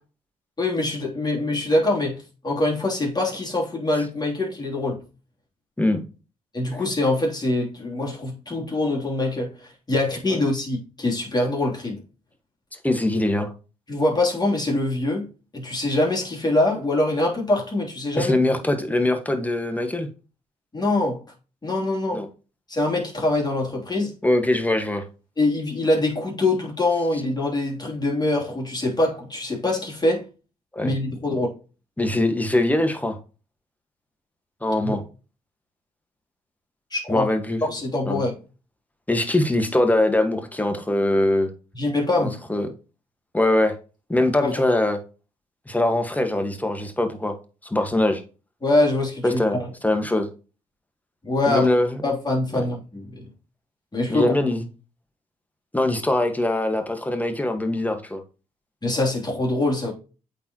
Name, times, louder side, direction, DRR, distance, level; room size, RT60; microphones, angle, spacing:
voice 1, 0.6-5.0 6.5-12.0 13.9-15.3 15.5-18.4 20.7-21.2 21.6-22.2 22.7-24.1 25.4-30.3 30.8-31.5 34.8-34.9 36.9-37.3 37.7-38.3 41.7-42.4 44.4-44.6 48.6-49.7 51.2-51.7 52.0-53.3 53.9-54.3 58.8-59.9, left 2 dB, 30° left, 3.2 m, -24 dB
voice 2, 12.8-13.5 18.1-20.1 22.1-22.3 24.2-25.0 30.7-30.9 32.0-33.2 34.6-35.0 37.1-37.6 38.1-38.2 39.1-41.5 42.2-42.7 43.3-43.7 44.1-45.0 45.7-47.3 47.6-48.2 49.2-50.3 51.4-52.0 52.5-52.7 54.1-54.6 55.7-58.2, left 1 dB, 10° left, 1.7 m, -22 dB
8.4 x 4.1 x 3.0 m
supercardioid pair, 45°, 15 cm